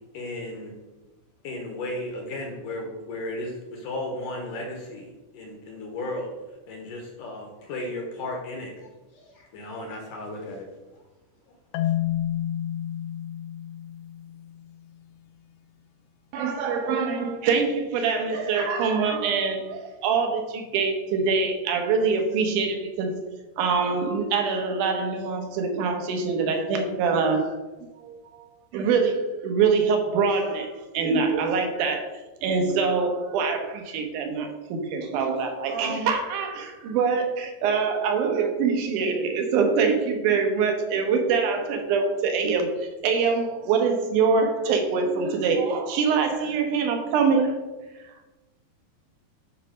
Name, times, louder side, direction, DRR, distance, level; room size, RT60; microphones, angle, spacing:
voice 1, 0.1-0.7 1.4-6.3 6.7-10.7, left 1 dB, 70° left, 1 dB, 2.0 m, -35 dB
Marimba xylophone, 11.7-14.7, left 12 dB, 85° left, 2.7 m, -30 dB
voice 2, 16.3-23.2 23.6-27.6 28.0-28.5 28.7-32.1 32.4-47.5, right 5 dB, 70° right, 4 dB, 2.0 m, -24 dB
voice 3, 47.9-48.3, right 5 dB, 85° right, 6 dB, 2.1 m, -39 dB
10.0 x 4.1 x 6.3 m, 1.2 s
omnidirectional pair, 4.9 m